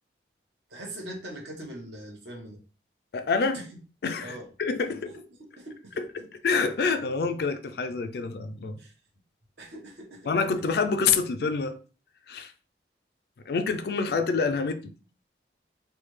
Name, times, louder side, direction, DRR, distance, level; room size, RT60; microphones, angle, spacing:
voice 1, 0.7-2.6 3.5-3.6 4.2-4.5 5.2-5.3 5.6-6.0 8.8-8.9 9.6-10.3, right 1 dB, 70° right, 1.1 m, -41 dB
voice 2, 3.1-3.6 4.0-5.2 6.0-8.8 10.3-11.8 12.3-12.5 13.5-14.9, left 4 dB, 60° left, 0.4 m, -27 dB
3.3 x 2.3 x 3.1 m
head